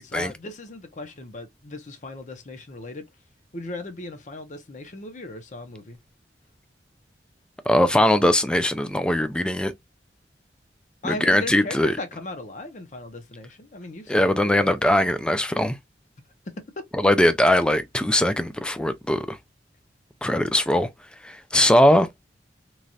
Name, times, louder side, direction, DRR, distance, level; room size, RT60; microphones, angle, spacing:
voice 1, 0.0-3.1 3.5-6.0 11.0-14.3 14.6-14.7 16.5-16.6, left 2 dB, 45° left, 0.7 m, -37 dB
voice 2, 7.7-9.7 11.0-12.0 14.1-15.8 16.9-19.4 20.2-20.9 21.2-22.1, left 1 dB, 5° left, 0.3 m, -20 dB
3.1 x 2.4 x 2.6 m
head